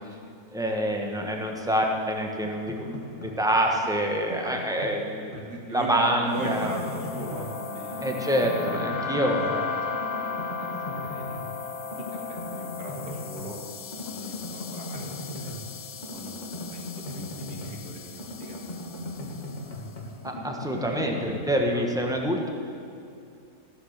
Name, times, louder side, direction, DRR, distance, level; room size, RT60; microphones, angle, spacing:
voice 1, 0.0-0.3 4.4-4.5 5.3-11.4 11.8-13.6 14.0-15.6 16.1-16.3 16.7-18.6 18.9-20.4 20.8-21.8, right 2 dB, 80° right, -1 dB, 2.4 m, -39 dB
voice 2, 0.5-5.4 5.7-6.7 8.0-9.4 20.2-22.5, right 1 dB, 5° right, 1 dB, 1.0 m, -26 dB
sound 1, 2.4-3.4 3.8-5.5 5.9-7.6 7.9-9.7 9.9-11.5 11.9-13.5 13.9-17.9 18.2-21.5, left 2 dB, 30° left, 1.9 m, -38 dB
sound 2, 6.4-19.8, left 5 dB, 55° left, 0.9 m, -36 dB
15.0 x 7.1 x 6.6 m, 2.6 s
omnidirectional pair, 1.7 m